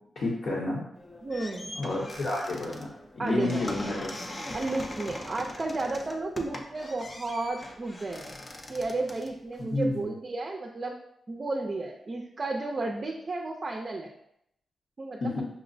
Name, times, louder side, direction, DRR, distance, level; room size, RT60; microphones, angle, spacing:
voice 1, 0.2-0.8 1.8-4.1 9.7-10.1 15.2-15.4, left 2 dB, 65° left, -7 dB, 0.9 m, -30 dB
sound 1, 0.9-10.0, left 1 dB, 35° left, 0.5 m, -41 dB
voice 2, 1.2-1.7 3.2-3.9 4.5-8.4 8.7-10.9 11.3-14.1 15.0-15.3, right 2 dB, 40° right, 0 dB, 0.4 m, -33 dB
5.9 x 2.0 x 2.6 m, 0.76 s
cardioid pair, 100°, 0 cm